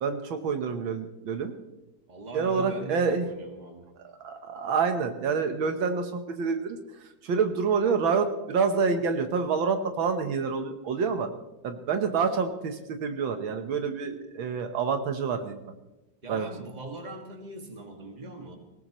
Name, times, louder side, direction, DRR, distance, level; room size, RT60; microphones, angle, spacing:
voice 1, 0.0-1.5 2.3-3.3 4.0-11.3 11.6-15.7 16.3-16.5, right 5 dB, 75° right, 7 dB, 1.8 m, -27 dB
voice 2, 2.1-3.9 16.2-18.6, right 2 dB, 20° right, 3 dB, 1.8 m, -41 dB
19.5 x 18.5 x 3.1 m, 0.98 s
omnidirectional pair, 2.2 m